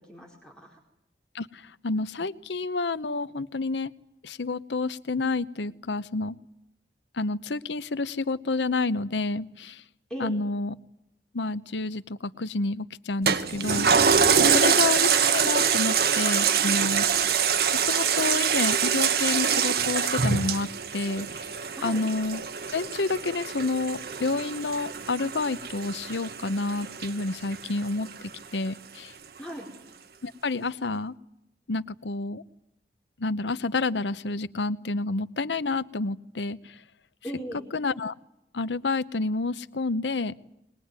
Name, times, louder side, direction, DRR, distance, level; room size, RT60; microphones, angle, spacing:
voice 1, 0.1-0.8 10.1-10.4 21.8-22.0 29.4-29.7 37.2-37.6, equal, 5° left, -1 dB, 4.7 m, -38 dB
voice 2, 1.3-3.9 4.2-6.4 7.1-9.8 10.2-10.8 11.3-15.0 15.3-17.1 17.7-21.5 21.8-22.4 22.7-29.1 30.2-31.1 31.7-32.4 33.2-36.8 37.7-38.1 38.5-40.3, left 3 dB, 90° left, 15 dB, 0.9 m, -29 dB
Toilet flush, 13.3-28.1 28.5-28.6, right 7 dB, 60° right, 1.1 m, -25 dB
21.5 x 21.0 x 9.6 m, 0.84 s
head